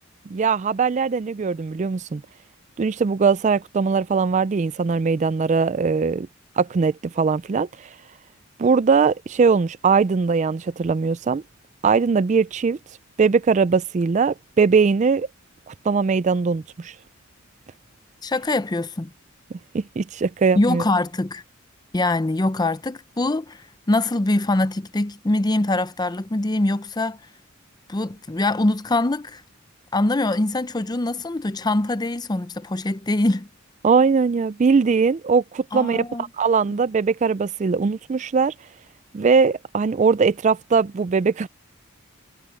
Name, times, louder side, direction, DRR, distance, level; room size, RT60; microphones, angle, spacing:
voice 1, 0.3-2.2 2.8-6.3 6.6-7.7 8.6-11.4 11.8-12.8 13.2-15.3 15.7-16.9 19.7-20.8 33.8-38.5 39.1-41.5, right 5 dB, 35° right, 0.3 m, -20 dB
voice 2, 18.2-19.1 20.5-21.4 21.9-27.2 27.9-29.4 29.9-33.5 35.7-36.2, left 2 dB, 20° left, 0.5 m, -23 dB
head